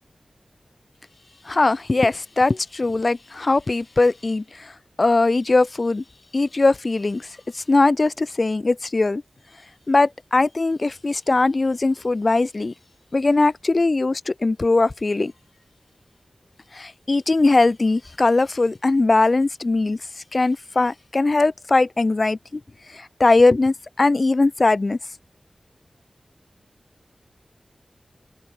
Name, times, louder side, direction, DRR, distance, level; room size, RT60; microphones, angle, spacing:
voice 1, 1.5-4.7 5.0-6.0 6.3-7.3 7.5-9.2 9.9-12.7 13.1-15.3 16.7-20.0 20.3-22.4 22.9-25.0, left 3 dB, 50° left, 0.9 m, -20 dB
cardioid pair, 40°, 0 cm